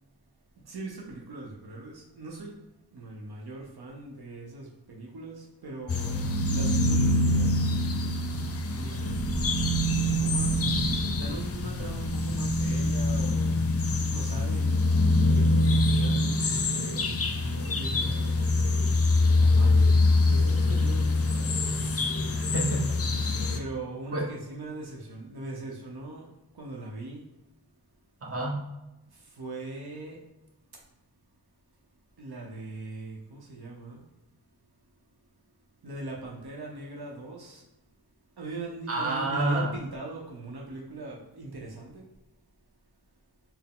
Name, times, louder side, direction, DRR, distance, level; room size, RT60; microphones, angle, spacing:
voice 1, 0.5-7.8 8.7-9.2 9.9-13.7 14.1-15.0 15.3-18.8 19.3-21.5 23.5-27.3 29.1-30.3 32.2-34.1 35.8-37.7 38.4-42.1, right 2 dB, 75° right, -2 dB, 0.8 m, -41 dB
sound 1, 5.9-23.6, left 2 dB, 40° left, 0.5 m, -25 dB
Thunder, 9.0-14.5, equal, 20° right, 0.6 m, -39 dB
voice 2, 22.3-23.0 24.1-24.2 28.2-28.6 38.9-39.7, right 2 dB, 35° right, -2 dB, 1.0 m, -28 dB
4.4 x 2.0 x 3.6 m, 0.97 s
wide cardioid pair, 60°, 39 cm